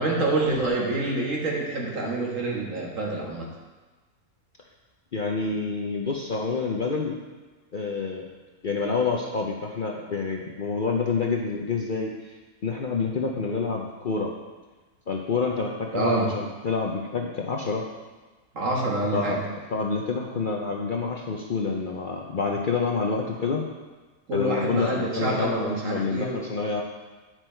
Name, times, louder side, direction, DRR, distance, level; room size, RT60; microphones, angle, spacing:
voice 1, 0.0-3.5 15.9-16.3 18.5-19.4 24.3-26.4, right 2 dB, 65° right, -2 dB, 1.9 m, -27 dB
voice 2, 5.1-7.1 7.7-8.2 8.6-12.4 12.6-14.3 15.1-17.8 19.1-19.4 19.7-23.6 24.3-26.8, left 4 dB, 50° left, 0 dB, 0.7 m, -28 dB
9.5 x 6.2 x 4.4 m, 1.3 s
omnidirectional pair, 1.5 m